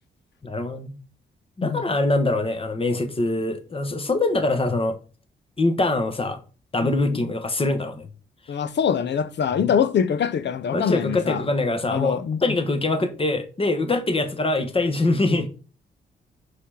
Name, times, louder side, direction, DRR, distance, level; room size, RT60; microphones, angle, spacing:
voice 1, 0.4-0.9 1.6-5.0 5.6-6.4 6.7-8.1 9.6-9.7 10.7-15.5, left 2 dB, 30° left, 1.3 m, -23 dB
voice 2, 6.8-7.3 8.5-11.4 11.9-12.6, left 7 dB, 65° left, 0.7 m, -24 dB
5.6 x 5.0 x 5.6 m
cardioid pair, 105°, 19 cm